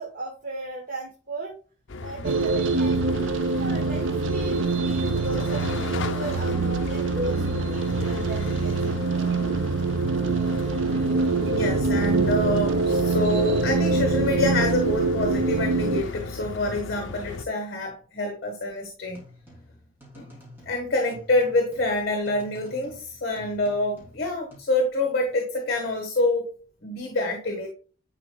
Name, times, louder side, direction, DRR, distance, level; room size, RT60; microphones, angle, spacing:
voice 1, 0.0-1.6 2.0-9.0, right 1 dB, 45° right, 0 dB, 1.0 m, -36 dB
sound 1, 1.9-17.5, left 3 dB, 70° left, 0.5 m, -36 dB
sound 2, 2.2-16.0, right 3 dB, 70° right, 0.6 m, -24 dB
voice 2, 11.5-19.2 20.1-20.4 20.6-26.5 26.8-27.7, left 2 dB, 50° left, 2 dB, 1.4 m, -27 dB
sound 3, 19.0-24.6, equal, 10° right, 2.4 m, -50 dB
10.0 x 4.2 x 2.2 m, 0.37 s
head